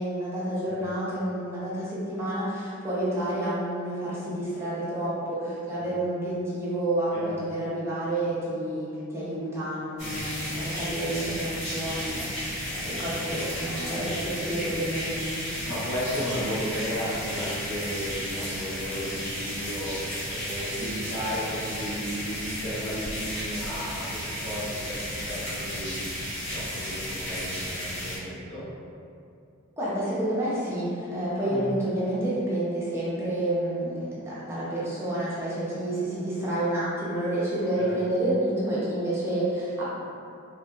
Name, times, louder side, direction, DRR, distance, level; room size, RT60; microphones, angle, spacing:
voice 1, 0.0-15.4 29.8-39.8, right 1 dB, 15° right, -9 dB, 0.5 m, -29 dB
voice 2, 7.1-7.4 10.0-10.2 12.8-13.0 13.9-14.1 15.7-26.0 26.5-28.6 31.4-31.7 37.7-37.9, equal, 70° left, -12 dB, 1.3 m, -34 dB
sound 1, 10.0-28.2, equal, 35° left, 1.3 m, -33 dB
2.7 x 2.6 x 2.3 m, 2.5 s
head